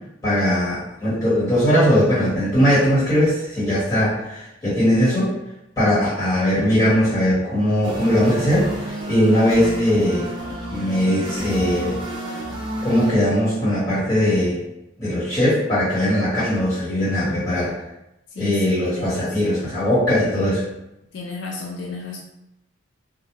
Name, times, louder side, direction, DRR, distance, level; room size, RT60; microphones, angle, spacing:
voice 1, 0.2-5.3 5.8-10.3 10.7-12.0 12.8-14.6 15.0-17.7 18.4-20.6, equal, 15° left, -13 dB, 1.3 m, -20 dB
sound 1, 7.8-13.1, right 1 dB, 25° right, 0.5 m, -31 dB
voice 2, 18.3-19.7 21.1-22.2, left 3 dB, 60° left, -1 dB, 0.4 m, -33 dB
2.4 x 2.2 x 2.9 m, 0.86 s
head